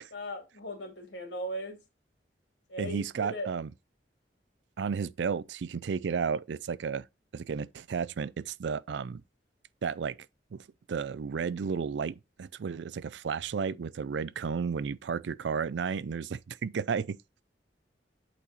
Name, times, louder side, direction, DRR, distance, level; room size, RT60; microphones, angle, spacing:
voice 1, 0.1-1.8 2.7-3.5, equal, 90° left, 2.4 m, -38 dB
voice 2, 2.8-3.7 4.8-7.1 7.3-9.2 9.8-10.2 10.5-10.6 10.9-17.2, right 6 dB, 85° right, 0.4 m, -33 dB
8.4 x 4.1 x 4.1 m
head